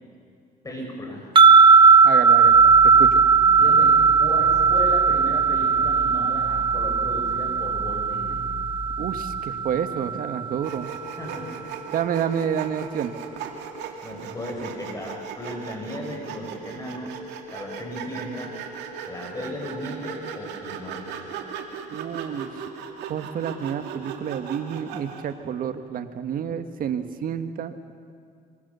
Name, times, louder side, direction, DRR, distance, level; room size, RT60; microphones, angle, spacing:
voice 1, 0.6-1.3 3.2-8.5 11.2-11.7 14.0-17.2 17.5-18.5 19.0-21.4 26.2-26.6, left 1 dB, 20° left, 1 dB, 6.0 m, -36 dB
sound 1, 1.4-10.6, right 5 dB, 30° right, 1.2 m, -17 dB
voice 2, 2.0-3.2 9.0-10.9 11.9-13.1 21.9-22.5 23.1-27.7, right 8 dB, 55° right, 9 dB, 1.7 m, -29 dB
sound 2, 2.4-9.4, left 2 dB, 75° left, 7.0 m, -37 dB
Sawing, 10.6-25.3, right 6 dB, 90° right, 2.6 m, -37 dB
25.5 x 24.0 x 7.0 m, 2.2 s
cardioid pair, 110°, 17 cm